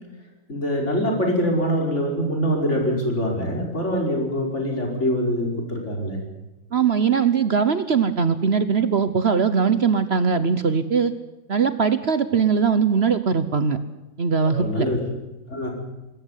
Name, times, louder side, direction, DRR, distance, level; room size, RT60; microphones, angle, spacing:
voice 1, 0.5-6.2 14.5-15.0 15.5-15.7, equal, 50° left, 1 dB, 5.4 m, -24 dB
voice 2, 6.7-11.1 11.5-13.8 14.2-14.9, right 6 dB, 50° right, 12 dB, 1.1 m, -20 dB
24.5 x 14.0 x 9.8 m, 1.1 s
omnidirectional pair, 1.5 m